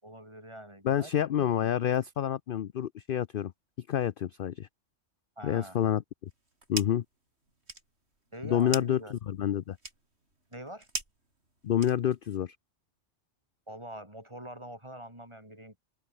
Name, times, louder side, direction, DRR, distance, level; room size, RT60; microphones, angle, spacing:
voice 1, 0.0-1.7 5.4-5.8 8.3-9.1 10.5-10.9 13.7-15.8, right 1 dB, 20° right, 6.2 m, -44 dB
voice 2, 0.8-3.5 3.9-4.7 5.4-6.0 6.7-7.0 8.4-9.8 11.6-12.6, left 10 dB, 55° left, 0.7 m, -28 dB
sound 1, 6.3-7.1 7.4-12.3, right 2 dB, 55° right, 4.9 m, -41 dB
open air
omnidirectional pair, 1.3 m